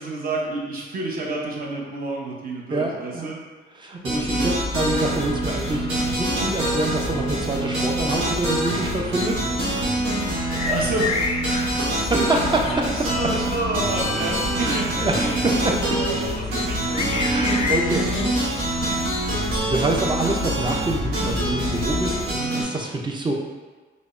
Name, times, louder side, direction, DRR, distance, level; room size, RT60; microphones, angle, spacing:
voice 1, 0.0-3.4 4.1-4.5 10.6-18.1 18.8-19.1, right 2 dB, 45° right, -3 dB, 0.9 m, -30 dB
voice 2, 2.7-3.3 3.8-9.4 11.5-11.8 14.6-15.8 17.2-18.1 19.6-23.3, right 2 dB, 25° right, 0 dB, 0.5 m, -26 dB
sound 1, 4.0-22.6, right 1 dB, 80° right, 1.0 m, -26 dB
sound 2, 4.1-22.2, left 4 dB, 30° left, 0.4 m, -31 dB
5.0 x 2.1 x 2.5 m, 1.4 s
cardioid pair, 90°, 20 cm